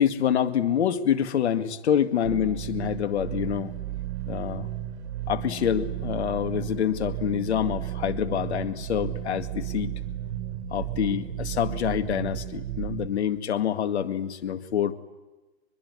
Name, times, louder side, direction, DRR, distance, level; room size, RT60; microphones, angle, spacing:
voice 1, 0.0-3.7 4.3-4.7 5.3-9.9 10.7-14.9, left 9 dB, 80° left, 10 dB, 2.1 m, -26 dB
sound 1, 2.2-13.1, right 12 dB, 75° right, 2.0 m, -33 dB
24.5 x 22.0 x 9.8 m, 1.1 s
hypercardioid pair, 115°, 33 cm